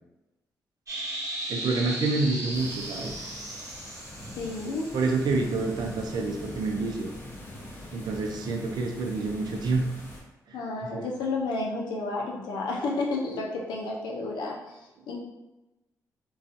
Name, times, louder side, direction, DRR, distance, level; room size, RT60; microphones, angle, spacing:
sound 1, 0.9-6.7, right 1 dB, 45° right, 0.8 m, -37 dB
voice 1, 1.5-3.1 4.9-7.1 7.9-9.8 10.5-10.6 10.9-11.1, right 3 dB, 70° right, 2 dB, 0.5 m, -28 dB
sound 2, 2.5-10.2, left 1 dB, 35° left, 0.8 m, -43 dB
voice 2, 4.4-4.9 10.5-14.6 15.1-15.2, left 3 dB, 85° left, -1 dB, 0.5 m, -31 dB
2.4 x 2.3 x 2.6 m, 1.0 s
supercardioid pair, 60°, 7 cm